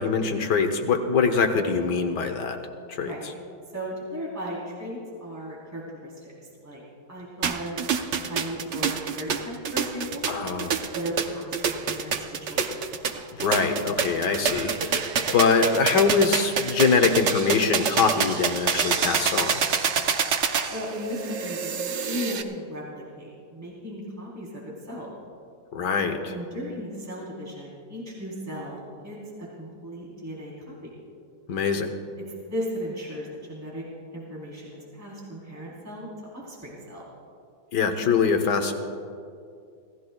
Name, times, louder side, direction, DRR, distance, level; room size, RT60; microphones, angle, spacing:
voice 1, 0.0-2.6 2.9-3.1 10.3-10.8 13.4-19.6 25.7-26.3 31.5-31.9 37.7-38.7, left 5 dB, 70° left, 6 dB, 1.6 m, -23 dB
voice 2, 3.0-3.3 3.7-6.3 6.6-6.8 7.1-7.8 8.2-10.2 10.9-12.8 20.7-21.7 22.0-25.1 26.3-29.2 29.6-30.7 32.5-33.8 34.1-36.1 36.3-37.0, equal, 10° right, -6 dB, 3.5 m, -36 dB
sound 1, 7.4-22.4, right 6 dB, 55° right, 0.8 m, -27 dB
27.0 x 16.0 x 2.3 m, 2.4 s
omnidirectional pair, 1.9 m